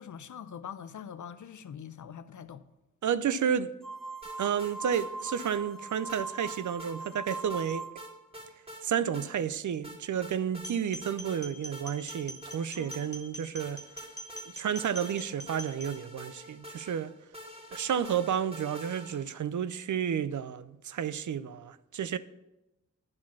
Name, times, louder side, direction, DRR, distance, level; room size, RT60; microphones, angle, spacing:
voice 1, 0.0-2.6 12.7-13.1, left 8 dB, 80° left, 0.6 m, -44 dB
voice 2, 3.0-3.7 4.4-7.8 8.8-13.8 14.5-17.1 17.7-22.2, right 8 dB, 80° right, 0.5 m, -31 dB
sound 1, 3.8-8.2, right 3 dB, ahead, 0.7 m, -40 dB
sound 2, 4.2-5.1 5.4-5.5 6.1-7.0 7.3-7.7 8.0-8.8 9.1-9.3 9.8-10.7 11.0-11.4 11.7-13.3 13.6-19.4, equal, 20° right, 2.1 m, -47 dB
sound 3, 10.6-15.9, equal, 35° left, 1.4 m, -44 dB
10.5 x 4.8 x 5.9 m
wide cardioid pair, 105°, 29 cm